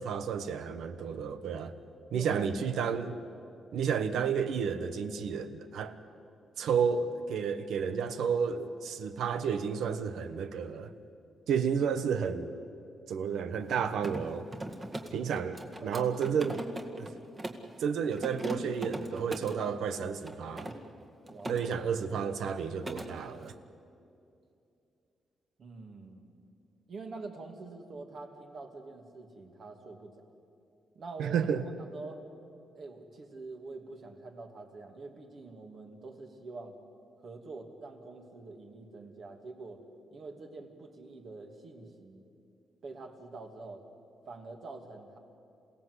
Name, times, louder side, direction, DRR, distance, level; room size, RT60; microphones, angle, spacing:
voice 1, 0.0-1.7 2.1-3.2 3.7-5.9 6.6-10.9 11.5-12.5 13.1-14.5 15.1-16.6 17.0-17.1 17.8-20.7 21.5-23.5 31.2-31.6, right 6 dB, 85° right, 10 dB, 1.3 m, -31 dB
voice 2, 2.1-2.5 3.1-3.2 15.8-16.0 21.3-21.6 25.6-26.4 26.9-30.2 30.9-32.2 32.8-36.8 37.2-39.8 40.1-42.2 42.8-43.8 44.3-45.2, right 3 dB, 50° right, 3 dB, 2.6 m, -45 dB
Mechanisms, 13.6-17.7 18.1-19.6 20.2-21.6 21.9-22.2 22.5-23.1, right 1 dB, 25° right, 1.9 m, -40 dB
28.0 x 17.0 x 8.2 m, 2.6 s
cardioid pair, 130°, 0 cm